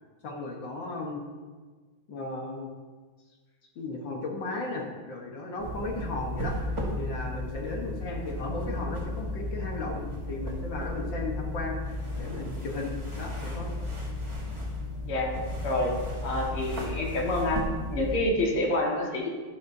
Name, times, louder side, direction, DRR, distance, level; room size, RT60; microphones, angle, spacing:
voice 1, 0.2-1.2 2.1-2.7 3.8-13.7, left 2 dB, 60° left, -1 dB, 1.9 m, -35 dB
sound 1, 5.6-18.2, left 1 dB, 15° right, 1.9 m, -34 dB
voice 2, 16.2-19.3, left 1 dB, 80° left, -1 dB, 2.7 m, -28 dB
12.0 x 11.5 x 2.7 m, 1.4 s
omnidirectional pair, 2.4 m